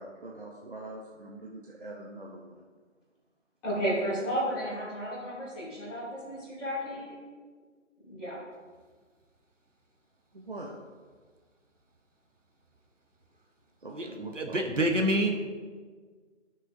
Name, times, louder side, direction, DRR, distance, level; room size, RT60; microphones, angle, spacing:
voice 1, 0.0-2.6 10.3-10.8 13.8-15.1, right 2 dB, 45° right, -2 dB, 0.8 m, -43 dB
voice 2, 3.6-7.1 8.0-8.4, equal, 5° left, -14 dB, 2.7 m, -33 dB
voice 3, 14.4-15.4, right 1 dB, 75° right, 4 dB, 1.4 m, -26 dB
15.5 x 6.2 x 2.7 m, 1.5 s
figure-of-eight pair, 160°, 38 cm